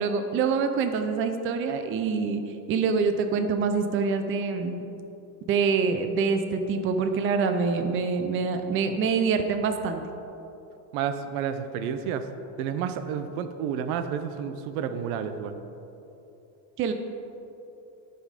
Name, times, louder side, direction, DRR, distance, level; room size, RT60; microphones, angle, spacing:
voice 1, 0.0-2.4 2.7-4.9 5.5-10.0 16.8-16.9, right 5 dB, 30° right, 7 dB, 0.5 m, -25 dB
voice 2, 10.9-12.3 12.6-15.6, right 8 dB, 85° right, 10 dB, 0.8 m, -30 dB
13.5 x 5.5 x 5.0 m, 2.9 s
cardioid pair, 155°, 42 cm